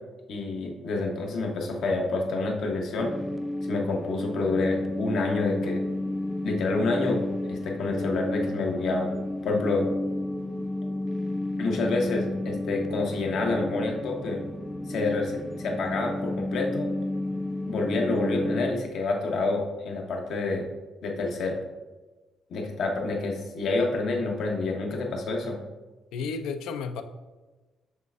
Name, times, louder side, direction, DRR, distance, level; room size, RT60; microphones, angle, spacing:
voice 1, 0.3-3.1 3.6-5.8 6.4-7.2 7.5-9.1 9.4-9.9 11.6-14.4 14.9-16.9 17.7-20.7 21.0-21.6 22.5-25.6, left 3 dB, 75° left, 1 dB, 0.8 m, -28 dB
sound 1, 3.0-18.7, left 1 dB, 5° left, 0.4 m, -31 dB
voice 2, 26.1-27.0, left 5 dB, 90° left, 8 dB, 0.3 m, -32 dB
6.4 x 3.2 x 2.4 m, 1.2 s
cardioid pair, 90°, 0 cm